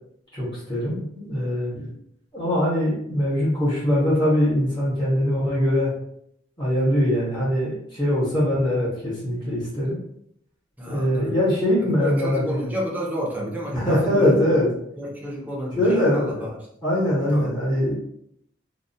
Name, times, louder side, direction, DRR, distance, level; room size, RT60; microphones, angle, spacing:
voice 1, 0.3-1.9 2.3-5.9 6.6-10.0 10.9-12.4 13.7-14.7 15.7-16.4 16.8-18.0, equal, 25° left, -8 dB, 0.9 m, -22 dB
voice 2, 10.8-11.3 11.8-14.6 15.0-16.6 17.2-17.5, equal, 10° right, -3 dB, 0.5 m, -30 dB
2.2 x 2.1 x 2.6 m, 0.73 s
head